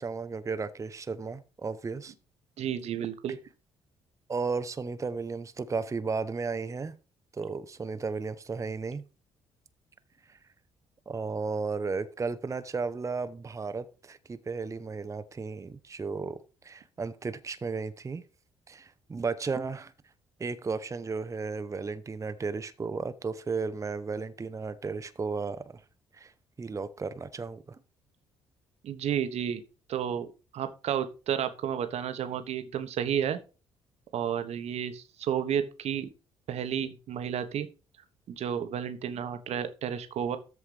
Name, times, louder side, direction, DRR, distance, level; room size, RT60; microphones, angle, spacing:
voice 1, 0.0-2.1 4.3-6.9 7.3-9.0 10.3-10.4 11.1-16.4 16.6-18.2 18.7-19.9 20.4-25.8 26.1-26.3 26.6-27.8, right 4 dB, 25° right, 0.7 m, -34 dB
voice 2, 2.6-3.4 28.8-29.6 29.9-33.4 34.1-36.1 36.5-37.7 38.3-40.4, right 9 dB, 55° right, 1.1 m, -31 dB
13.5 x 4.7 x 3.3 m
figure-of-eight pair, 45°, 13 cm